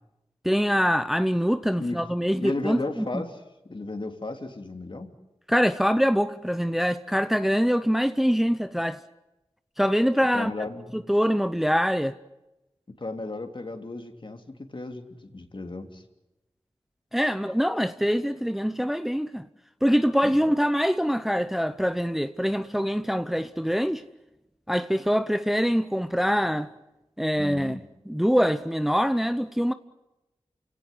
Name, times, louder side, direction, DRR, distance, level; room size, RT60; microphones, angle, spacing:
voice 1, 0.4-3.2 5.5-9.0 9.8-10.5 10.9-12.1 17.1-19.5 19.8-24.0 24.7-26.7 27.2-27.8 28.1-29.7, equal, 5° right, 0.8 m, -24 dB
voice 2, 2.4-3.4 3.6-5.1 10.3-11.0 13.0-14.4 14.7-16.0 20.2-20.4 27.4-27.8, left 2 dB, 50° left, 3.0 m, -34 dB
29.0 x 17.5 x 9.6 m
wide cardioid pair, 55°, 11 cm